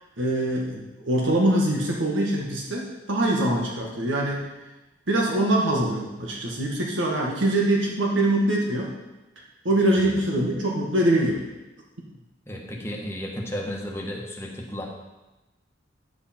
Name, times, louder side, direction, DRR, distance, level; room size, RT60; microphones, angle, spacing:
voice 1, 0.2-4.5 5.1-8.9 9.6-11.4, right 1 dB, 90° right, -1 dB, 1.6 m, -23 dB
voice 2, 12.5-14.9, equal, 15° left, -1 dB, 1.4 m, -33 dB
10.0 x 7.9 x 4.4 m, 1.0 s
head